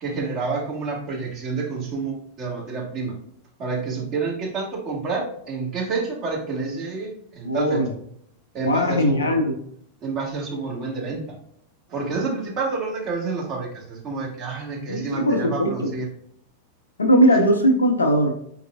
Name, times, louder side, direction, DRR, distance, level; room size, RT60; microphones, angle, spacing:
voice 1, 0.0-3.2 3.6-7.8 8.5-9.4 10.0-11.2 11.9-16.1, right 4 dB, 35° right, -2 dB, 1.4 m, -28 dB
voice 2, 7.4-7.9 8.6-9.6 14.9-15.7 17.0-18.4, equal, 75° left, 3 dB, 0.6 m, -19 dB
4.6 x 4.0 x 2.3 m, 0.69 s
figure-of-eight pair, 90°, 0 cm